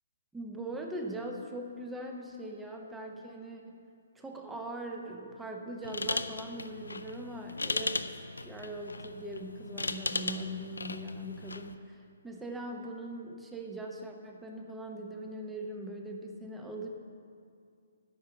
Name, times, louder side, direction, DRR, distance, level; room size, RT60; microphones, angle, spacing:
voice 1, 0.3-3.8 4.1-16.9, right 1 dB, 5° right, 2 dB, 0.9 m, -41 dB
sound 1, 5.8-11.7, left 3 dB, 80° left, 0.5 m, -37 dB
9.8 x 5.6 x 8.0 m, 2.3 s
figure-of-eight pair, 135°, 0 cm